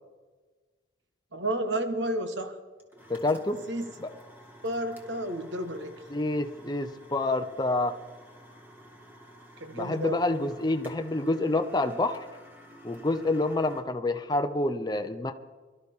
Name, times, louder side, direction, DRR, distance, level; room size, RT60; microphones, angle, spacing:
voice 1, 1.3-2.6 3.7-3.9 4.6-5.9 9.6-10.2, right 1 dB, 70° right, 7 dB, 1.3 m, -31 dB
sound 1, 2.8-13.8, equal, 10° right, 1.7 m, -51 dB
voice 2, 3.1-3.6 4.0-4.1 6.1-8.0 9.7-12.2 12.8-15.3, left 2 dB, 20° left, 6 dB, 0.6 m, -28 dB
23.0 x 12.5 x 3.6 m, 1.3 s
head